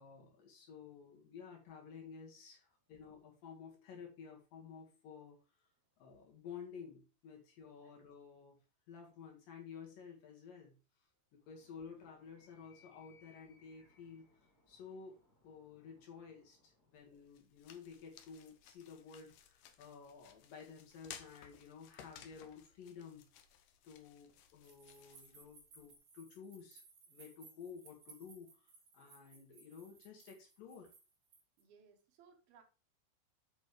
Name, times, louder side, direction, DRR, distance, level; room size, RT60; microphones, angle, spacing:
voice 1, 0.0-5.4 6.0-8.6 8.9-10.8 11.3-14.3 14.7-15.2 15.4-23.2 23.8-26.8 27.1-30.9, left 6 dB, 60° left, 3.2 m, -53 dB
Animal, 11.4-17.2, left 4 dB, 25° left, 2.5 m, -70 dB
sound 1, 17.0-26.0, left 9 dB, 85° left, 1.7 m, -59 dB
sound 2, 24.6-31.6, right 4 dB, 40° right, 2.6 m, -62 dB
voice 2, 31.6-32.6, right 6 dB, 70° right, 2.8 m, -64 dB
8.1 x 6.2 x 3.2 m
omnidirectional pair, 4.7 m